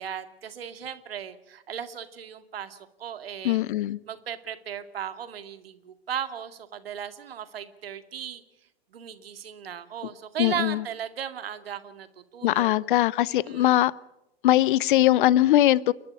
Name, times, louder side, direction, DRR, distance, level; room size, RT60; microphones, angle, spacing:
voice 1, 0.0-3.6 4.1-8.4 8.9-12.1 12.3-12.7 13.3-13.7, right 9 dB, 65° right, 10 dB, 2.2 m, -36 dB
voice 2, 3.4-4.0 10.4-10.8 12.4-13.9 14.4-15.9, left 14 dB, 55° left, 23 dB, 0.8 m, -21 dB
29.5 x 11.5 x 9.8 m, 0.88 s
figure-of-eight pair, 100°, 31 cm